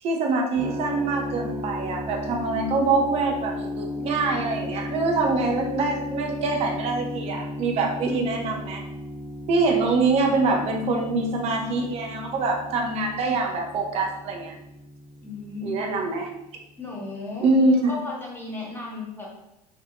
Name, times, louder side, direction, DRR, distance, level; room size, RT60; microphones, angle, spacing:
voice 1, 0.0-8.8 9.5-14.5 15.6-16.3 17.4-17.9, right 3 dB, 30° right, 1 dB, 0.5 m, -24 dB
sound 1, 0.6-16.5, left 1 dB, 60° right, 1.3 m, -35 dB
voice 2, 15.2-15.9 16.8-17.5 17.9-19.3, left 3 dB, 10° left, -4 dB, 0.9 m, -35 dB
3.5 x 2.5 x 2.3 m, 0.86 s
figure-of-eight pair, 75°, 21 cm